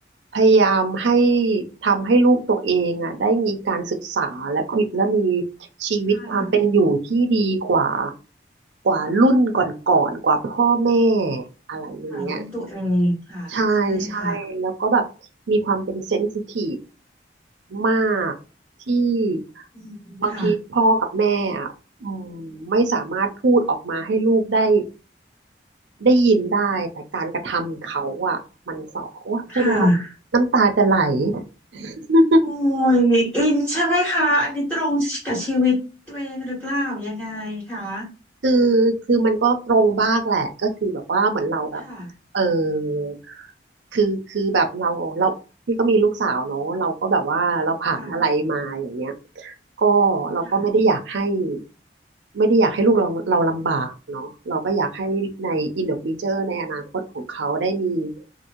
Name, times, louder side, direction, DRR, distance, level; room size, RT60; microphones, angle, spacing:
voice 1, 0.3-5.4 5.8-8.1 8.8-11.4 11.7-12.4 13.5-15.0 15.5-16.8 17.7-18.3 18.9-19.6 20.2-21.7 22.0-24.8 26.0-28.4 28.7-29.9 30.3-31.4 31.7-32.4 38.4-41.8 42.3-43.5 43.9-45.3 45.7-51.6 52.3-56.8 57.1-58.1, right 3 dB, 80° right, 5 dB, 0.6 m, -21 dB
voice 2, 6.1-6.5 12.1-13.5 13.8-14.4 19.7-20.5 29.5-30.1 32.4-38.1 41.8-42.1 47.9-48.1 50.4-50.6, equal, 5° left, -7 dB, 1.3 m, -23 dB
2.6 x 2.6 x 2.9 m, 0.33 s
head